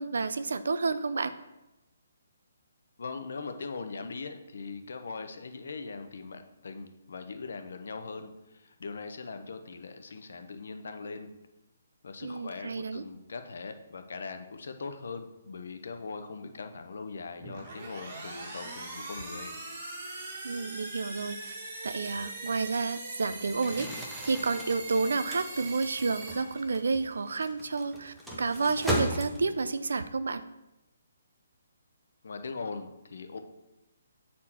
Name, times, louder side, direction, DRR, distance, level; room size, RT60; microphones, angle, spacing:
voice 1, 0.0-1.3 12.2-13.0 20.4-21.5 21.8-30.4, right 4 dB, 80° right, 13 dB, 0.5 m, -30 dB
voice 2, 3.0-11.3 12.0-19.5 32.2-33.4, left 4 dB, 65° left, 8 dB, 0.7 m, -40 dB
sound 1, 17.4-27.1, right 2 dB, 35° right, 1.7 m, -42 dB
Crumpling crinkling, 23.6-29.7, right 1 dB, ahead, 0.8 m, -37 dB
7.2 x 4.3 x 4.3 m, 0.96 s
hypercardioid pair, 170°, 0 cm